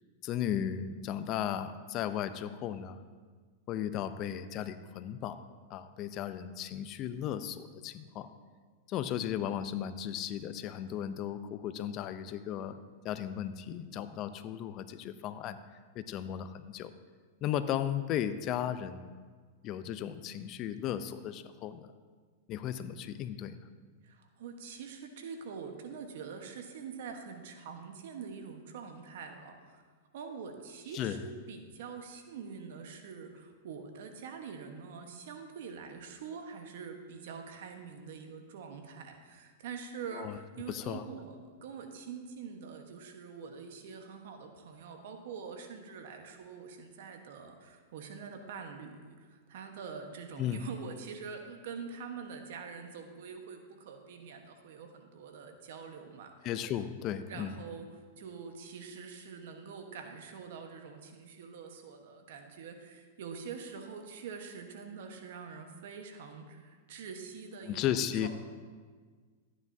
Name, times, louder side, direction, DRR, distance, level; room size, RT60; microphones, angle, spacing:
voice 1, 0.2-3.0 3.7-5.4 5.7-8.3 8.9-12.8 13.0-15.6 16.0-16.9 17.4-19.1 19.6-21.9 22.5-23.6 30.9-31.2 40.1-40.4 40.7-41.0 50.4-50.7 56.4-57.6 67.6-68.3, left 10 dB, 35° left, 11 dB, 0.5 m, -35 dB
voice 2, 24.0-29.8 30.1-56.5 57.3-57.9 58.2-68.3, right 6 dB, 65° right, 5 dB, 1.1 m, -45 dB
13.0 x 9.6 x 2.7 m, 1.5 s
hypercardioid pair, 130°, 0 cm